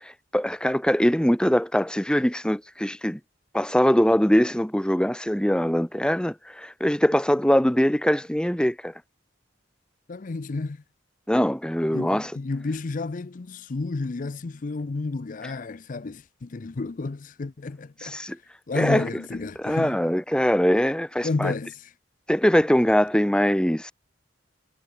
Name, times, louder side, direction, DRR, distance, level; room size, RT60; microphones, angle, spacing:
voice 1, 0.0-3.2 3.5-8.9 11.3-12.3 18.0-18.4 18.7-19.0 19.6-21.5 22.3-23.9, equal, 5° left, 1.0 m, -22 dB
voice 2, 10.1-10.8 11.9-18.3 18.7-20.0 21.2-21.9, left 3 dB, 45° left, 0.5 m, -31 dB
head